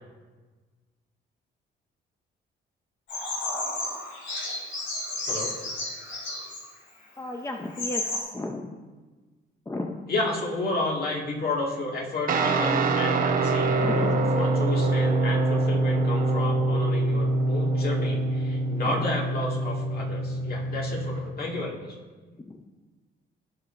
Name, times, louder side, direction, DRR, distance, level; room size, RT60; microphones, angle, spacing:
Bird vocalization bird call bird song, 3.1-6.6 7.3-7.4 7.7-8.2, left 2 dB, 85° left, 3.0 m, -32 dB
voice 1, 5.2-5.5 10.1-21.9, left 2 dB, 50° left, -2 dB, 2.1 m, -31 dB
voice 2, 7.2-8.0 8.3-8.7 9.7-10.0 13.8-14.2, left 2 dB, 15° left, 3 dB, 0.6 m, -32 dB
Guitar, 12.3-21.2, right 2 dB, 45° right, 1.0 m, -25 dB
16.5 x 5.6 x 2.6 m, 1.3 s
cardioid pair, 90°, 20 cm